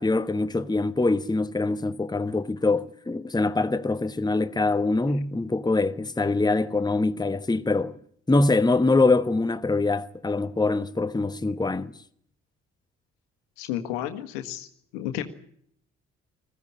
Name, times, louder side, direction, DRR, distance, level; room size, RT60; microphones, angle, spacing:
voice 1, 0.0-7.9 8.3-11.9, left 3 dB, 10° left, 1.2 m, -24 dB
voice 2, 13.6-14.7 14.9-15.2, left 12 dB, 70° left, 1.7 m, -31 dB
21.0 x 15.0 x 9.9 m
figure-of-eight pair, 40°, 36 cm